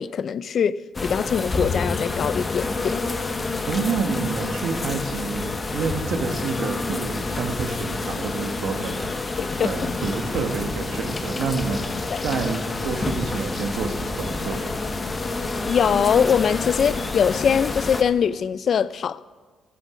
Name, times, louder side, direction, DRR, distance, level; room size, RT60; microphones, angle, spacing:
voice 1, 0.0-3.0 9.4-9.9 12.1-12.3 15.4-19.3, left 7 dB, 55° left, 0.4 m, -22 dB
sound 1, 0.9-18.0, left 3 dB, 30° left, 1.0 m, -28 dB
voice 2, 3.7-9.0 9.5-11.8 12.2-14.7, right 5 dB, 75° right, 1.6 m, -28 dB
12.0 x 11.5 x 5.1 m
cardioid pair, 90°, 0 cm